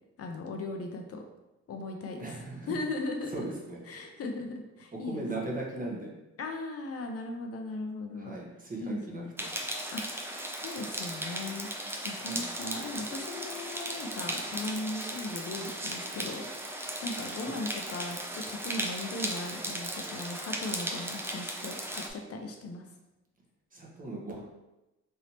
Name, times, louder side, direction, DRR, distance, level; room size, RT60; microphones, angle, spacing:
voice 1, 0.2-1.2 1.7-3.5 3.9-5.6 6.4-8.4 8.8-9.4 9.9-10.0 10.5-11.7 12.0-16.5 16.8-22.9, left 2 dB, 50° left, 3 dB, 0.5 m, -38 dB
voice 2, 2.2-2.7 3.3-4.1 5.0-6.1 8.2-9.5 12.2-12.5 17.4-17.6 23.7-24.4, right 2 dB, 25° right, -2 dB, 0.8 m, -38 dB
sound 1, 9.4-22.1, right 1 dB, 10° right, 0.4 m, -37 dB
3.2 x 2.7 x 2.8 m, 0.99 s
cardioid pair, 90°, 30 cm